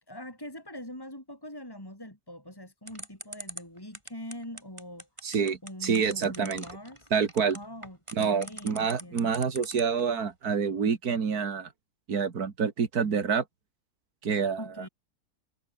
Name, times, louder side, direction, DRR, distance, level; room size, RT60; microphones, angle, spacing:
voice 1, 0.1-5.1 5.6-7.1 7.5-9.3 14.6-14.9, left 1 dB, 15° left, 5.5 m, -43 dB
sound 1, 2.9-10.0, right 1 dB, 20° right, 7.5 m, -42 dB
voice 2, 5.2-6.6 7.1-7.6 8.1-11.7 12.1-13.4 14.2-14.7, right 6 dB, 80° right, 2.5 m, -27 dB
omnidirectional pair, 1.6 m